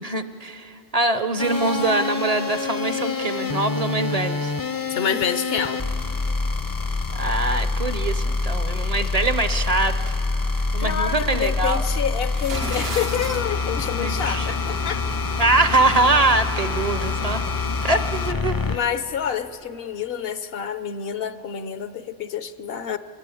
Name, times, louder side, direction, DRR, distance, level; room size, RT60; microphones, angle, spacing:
voice 1, 0.0-4.5 7.1-10.2 10.7-11.8 13.9-14.5 15.4-17.4 17.8-18.8, right 2 dB, 45° right, 10 dB, 0.7 m, -23 dB
sound 1, 1.4-18.8, left 3 dB, 25° left, 0.5 m, -26 dB
voice 2, 4.9-5.8 10.8-15.0 18.7-23.0, left 8 dB, 70° left, 12 dB, 0.9 m, -28 dB
sound 2, 12.2-13.5, right 6 dB, 80° right, 1.1 m, -34 dB
25.0 x 20.0 x 8.4 m, 2.9 s
omnidirectional pair, 1.0 m